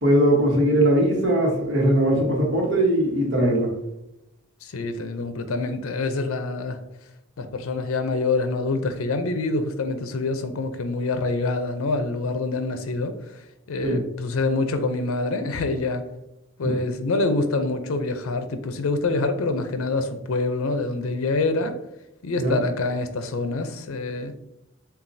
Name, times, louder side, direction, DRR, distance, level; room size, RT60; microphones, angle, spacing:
voice 1, 0.0-3.7 13.8-14.0 16.6-16.8 22.4-22.6, right 1 dB, 60° right, -1 dB, 1.1 m, -20 dB
voice 2, 4.6-6.8 7.4-13.2 13.7-16.0 16.6-21.8 22.2-24.3, left 3 dB, 80° left, 8 dB, 0.5 m, -26 dB
7.0 x 2.4 x 2.6 m, 0.84 s
head